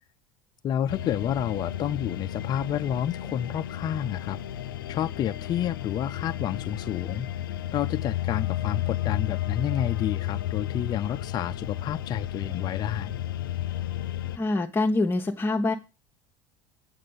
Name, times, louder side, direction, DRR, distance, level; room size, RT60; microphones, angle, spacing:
voice 1, 0.6-4.4 4.9-7.3 7.7-13.2, left 10 dB, 40° left, 0.4 m, -30 dB
sound 1, 0.9-14.4, left 12 dB, 85° left, 0.6 m, -32 dB
voice 2, 14.4-15.7, left 2 dB, 20° left, 1.0 m, -25 dB
8.8 x 6.6 x 5.3 m
hypercardioid pair, 80°, 11 cm